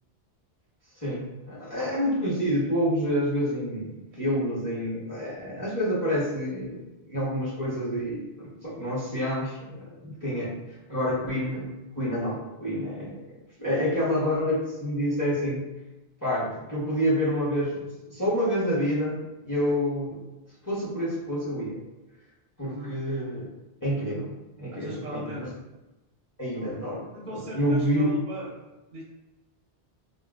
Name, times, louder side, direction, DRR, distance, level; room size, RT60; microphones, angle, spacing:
voice 1, 1.0-10.5 10.9-11.6 12.0-15.6 16.2-20.2 20.6-21.8 22.6-23.5 23.8-25.5 26.4-27.0 27.3-28.1, equal, 20° left, -7 dB, 0.7 m, -28 dB
voice 2, 22.6-23.0 24.7-25.6 26.5-26.7 27.1-29.0, right 1 dB, 60° right, -3 dB, 0.6 m, -40 dB
3.7 x 2.1 x 2.3 m, 1.0 s
omnidirectional pair, 1.1 m